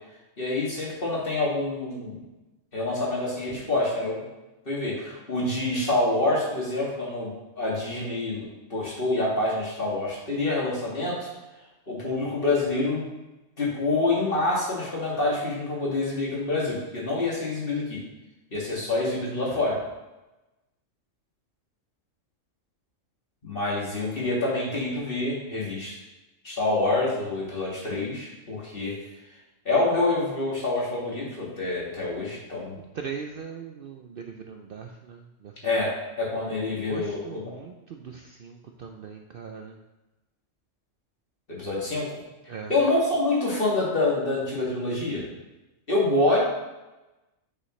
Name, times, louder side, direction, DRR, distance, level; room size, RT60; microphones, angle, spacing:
voice 1, 0.4-2.2 2.7-4.2 4.7-7.3 7.6-8.5 8.7-11.3 11.9-13.0 13.6-18.0 18.5-19.8 23.4-25.9 26.4-29.0 29.7-32.7 35.6-35.9 36.2-37.5 41.5-42.2 42.7-45.2 45.9-46.4, left 2 dB, 45° left, -5 dB, 2.4 m, -26 dB
voice 2, 32.8-35.7 36.6-39.8 42.5-42.7, right 6 dB, 60° right, 4 dB, 0.6 m, -40 dB
8.1 x 6.4 x 3.2 m, 1.0 s
omnidirectional pair, 1.3 m